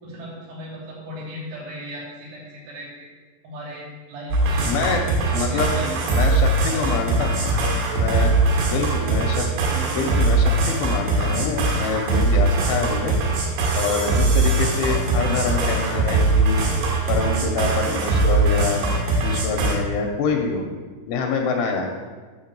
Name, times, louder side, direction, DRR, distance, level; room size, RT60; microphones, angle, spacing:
voice 1, 0.0-3.1 3.4-4.7 5.3-6.1 6.6-6.9 8.2-8.4, equal, 85° right, -5 dB, 5.8 m, -37 dB
sound 1, 4.3-19.8, right 2 dB, 65° right, 3.3 m, -21 dB
voice 2, 4.7-5.7 6.1-7.4 8.0-8.3 8.7-9.5 9.9-13.2 13.7-16.7 17.1-18.9 19.2-20.7 21.1-21.9, left 4 dB, 80° left, 2 dB, 3.0 m, -26 dB
9.6 x 5.8 x 7.5 m, 1.4 s
omnidirectional pair, 6.0 m